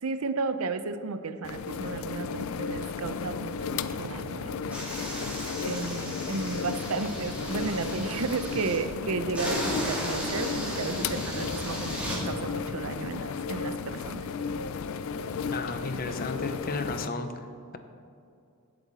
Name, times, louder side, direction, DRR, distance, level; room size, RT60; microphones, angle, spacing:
voice 1, 0.0-4.8 5.6-14.3, right 4 dB, 80° right, 11 dB, 0.6 m, -33 dB
sound 1, 1.4-17.1, left 5 dB, 70° left, 0.4 m, -34 dB
sound 2, 4.7-8.8 9.3-12.2, equal, 5° right, 2.8 m, -35 dB
voice 2, 15.5-17.3, left 3 dB, 45° left, 8 dB, 0.8 m, -33 dB
16.5 x 8.1 x 4.2 m, 2.5 s
head